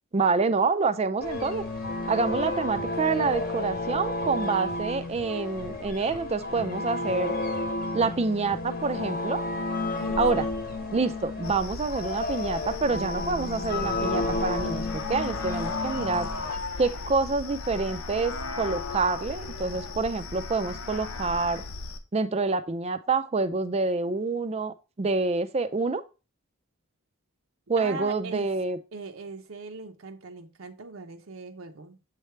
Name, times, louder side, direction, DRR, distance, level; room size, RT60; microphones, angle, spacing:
voice 1, 0.1-1.6 2.1-7.3 7.9-9.4 10.2-10.5 10.9-16.3 16.8-21.6 22.1-26.0 27.7-28.8, right 4 dB, 30° right, 0.4 m, -27 dB
sound 1, 1.2-16.6, left 2 dB, 45° left, 1.0 m, -32 dB
voice 2, 9.9-10.5 27.8-28.5 28.9-32.0, right 3 dB, 70° right, 0.7 m, -40 dB
sound 2, 11.4-22.0, left 3 dB, 75° left, 0.7 m, -36 dB
7.5 x 3.3 x 4.4 m
head